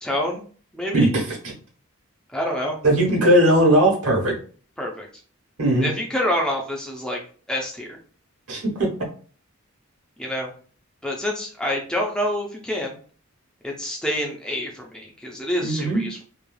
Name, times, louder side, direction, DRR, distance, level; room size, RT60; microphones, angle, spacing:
voice 1, 0.0-0.4 0.7-1.1 2.3-2.8 4.8-5.1 5.8-7.2 7.5-8.0 10.2-10.5 11.0-13.0 13.6-16.2, left 1 dB, 5° left, 0 dB, 0.4 m, -27 dB
voice 2, 0.9-1.3 2.8-4.3 5.6-5.9 8.5-8.9 15.6-16.1, right 1 dB, 80° right, -1 dB, 1.1 m, -18 dB
3.1 x 2.3 x 2.3 m, 0.41 s
head